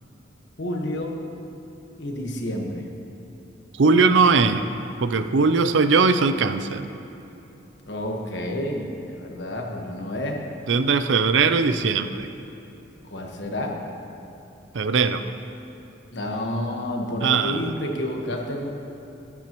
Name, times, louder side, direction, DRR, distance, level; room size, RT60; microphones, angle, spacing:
voice 1, 0.6-1.2 2.0-2.9 7.9-10.4 13.1-13.7 16.1-18.7, left 1 dB, 70° left, 1 dB, 1.3 m, -29 dB
voice 2, 3.8-4.6 5.0-6.8 10.7-12.3 14.7-15.2 17.2-17.7, right 4 dB, 80° right, 10 dB, 0.5 m, -20 dB
13.5 x 12.0 x 3.0 m, 2.9 s
head